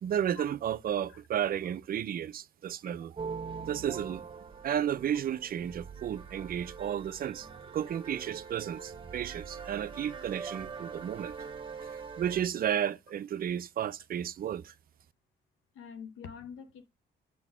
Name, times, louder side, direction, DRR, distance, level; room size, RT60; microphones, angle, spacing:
voice 1, 0.0-3.2 3.6-4.2 4.6-11.4 11.8-14.7, right 10 dB, 50° right, 0.5 m, -33 dB
sound 1, 3.2-12.4, right 5 dB, 25° right, 1.0 m, -43 dB
voice 2, 15.7-16.9, left 7 dB, 80° left, 0.8 m, -46 dB
7.4 x 4.0 x 6.0 m
cardioid pair, 90°, 20 cm